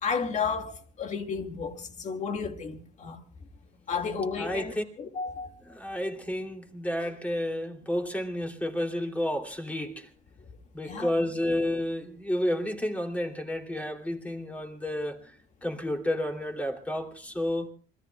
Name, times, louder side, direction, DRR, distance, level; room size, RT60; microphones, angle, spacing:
voice 1, 0.0-3.2 3.9-5.5 10.8-11.1, left 5 dB, 45° left, 2.1 m, -32 dB
voice 2, 4.4-4.8 5.7-10.1 10.7-15.2 15.6-17.7, left 1 dB, 10° left, 2.9 m, -31 dB
27.0 x 21.0 x 2.3 m
cardioid pair, 110°, 17 cm